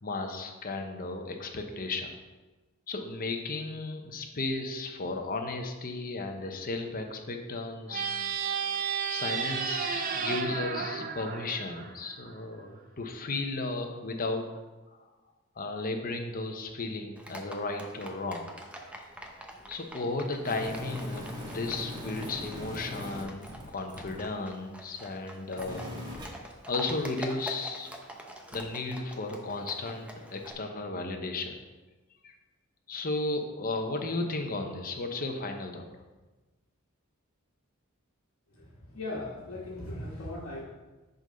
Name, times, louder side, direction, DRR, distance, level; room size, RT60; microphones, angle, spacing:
voice 1, 0.0-2.1 2.9-8.0 9.1-14.5 14.9-15.0 15.6-18.5 19.7-26.3 26.7-27.9 28.5-31.6 32.2-32.3 32.9-35.9, left 3 dB, 45° left, 4 dB, 0.9 m, -34 dB
sound 1, 7.9-12.3, right 6 dB, 45° right, 0.6 m, -32 dB
Livestock farm animals working animals, 17.2-30.5, right 1 dB, 5° right, 0.7 m, -46 dB
sound 2, 20.4-24.2 25.5-26.3 28.5-28.6, left 1 dB, 20° right, 1.4 m, -39 dB
voice 2, 38.5-40.6, left 1 dB, 80° left, -7 dB, 1.4 m, -38 dB
7.9 x 3.9 x 5.5 m, 1.2 s
head